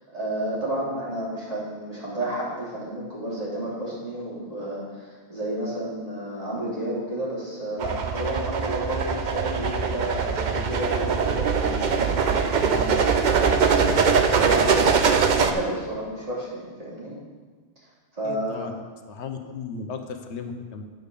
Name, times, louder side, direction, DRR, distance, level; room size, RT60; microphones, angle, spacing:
voice 1, 0.1-17.1 18.1-18.7, right 1 dB, 35° right, -8 dB, 3.0 m, -31 dB
sound 1, 7.8-15.5, right 5 dB, 50° right, 0.6 m, -22 dB
voice 2, 18.2-18.7 19.1-20.8, left 5 dB, 80° left, 6 dB, 1.1 m, -35 dB
9.4 x 5.2 x 6.7 m, 1.4 s
omnidirectional pair, 1.1 m